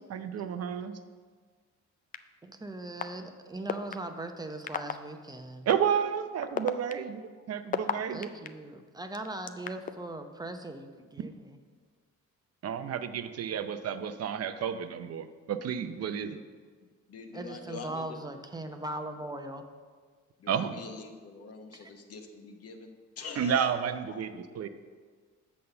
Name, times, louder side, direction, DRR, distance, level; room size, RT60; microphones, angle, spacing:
voice 1, 0.1-1.0 5.7-8.3 12.6-16.4 20.5-20.8 23.4-24.7, right 8 dB, 55° right, 10 dB, 0.6 m, -31 dB
sound 1, 2.1-2.2 3.0-3.1 3.7-3.9 4.7-4.9 5.7-5.8 6.4-8.5 9.1-9.9, left 7 dB, 30° left, 0.4 m, -31 dB
voice 2, 2.4-5.7 8.1-11.6 17.3-19.7 21.7-21.9, right 2 dB, 15° right, 6 dB, 0.7 m, -40 dB
voice 3, 17.1-18.2 20.4-23.7 24.1-24.4, left 4 dB, 50° left, 5 dB, 1.1 m, -45 dB
7.7 x 4.1 x 6.7 m, 1.5 s
cardioid pair, 90°, 30 cm